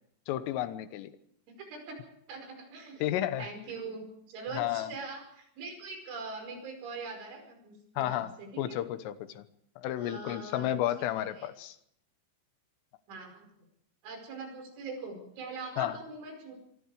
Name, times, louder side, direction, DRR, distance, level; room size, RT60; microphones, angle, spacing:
voice 1, 0.3-1.1 3.0-3.5 4.5-4.9 8.0-9.4 9.8-11.8 15.8-16.0, left 12 dB, 85° left, 12 dB, 3.7 m, -32 dB
voice 2, 1.6-2.0 2.3-3.1 3.4-8.8 10.0-10.7 11.2-11.5 13.1-13.5 14.0-16.6, right 3 dB, 70° right, 4 dB, 7.5 m, -42 dB
24.5 x 23.0 x 4.9 m, 0.71 s
omnidirectional pair, 5.7 m